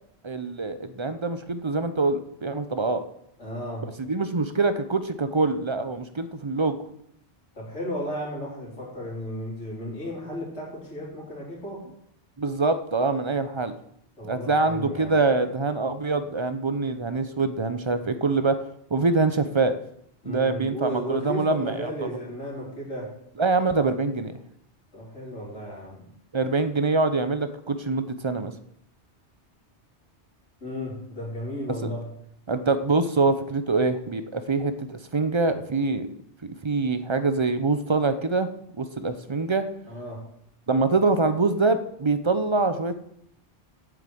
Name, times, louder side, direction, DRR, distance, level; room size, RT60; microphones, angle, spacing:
voice 1, 0.2-3.0 4.0-6.8 12.4-13.8 14.2-18.6 18.9-19.8 20.2-21.9 23.4-24.4 26.3-28.5 31.8-31.9 32.5-36.1 36.4-38.5 38.8-39.6 40.7-42.9, right 3 dB, 30° right, 11 dB, 0.6 m, -24 dB
voice 2, 3.4-3.9 7.5-11.8 14.2-15.2 20.2-23.1 24.9-26.1 30.6-32.1 39.9-40.2, equal, 85° left, -4 dB, 4.1 m, -34 dB
8.6 x 6.7 x 7.8 m, 0.72 s
omnidirectional pair, 1.2 m